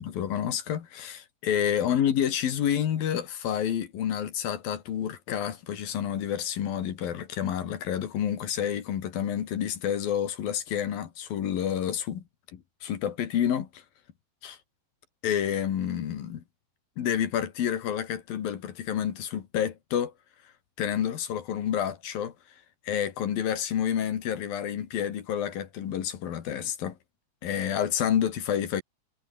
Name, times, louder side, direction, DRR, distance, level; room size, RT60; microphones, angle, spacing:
voice 1, 0.0-12.2 12.5-13.8 14.4-14.6 15.2-16.4 17.0-20.1 20.8-22.3 22.9-27.0 27.4-28.8, left 9 dB, 55° left, 3.5 m, -29 dB
omnidirectional pair, 5.3 m